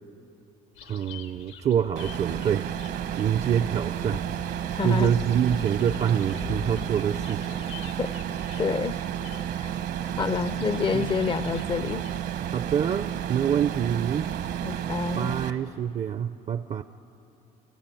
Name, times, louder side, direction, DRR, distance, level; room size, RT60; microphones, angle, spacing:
sound 1, 0.7-12.2, left 7 dB, 85° left, 1.5 m, -44 dB
voice 1, 0.9-2.7 3.1-4.2 4.5-7.5 10.9-11.1 12.5-14.3 15.2-16.8, right 9 dB, 40° right, 12 dB, 0.5 m, -26 dB
sound 2, 2.0-15.5, right 10 dB, 75° right, 1.1 m, -32 dB
voice 2, 4.7-5.1 8.0-8.1 8.6-9.0 9.6-9.7 10.2-12.1 14.6-15.4, left 5 dB, 30° left, 15 dB, 0.4 m, -28 dB
29.5 x 14.5 x 9.1 m, 2.9 s
cardioid pair, 110°, 17 cm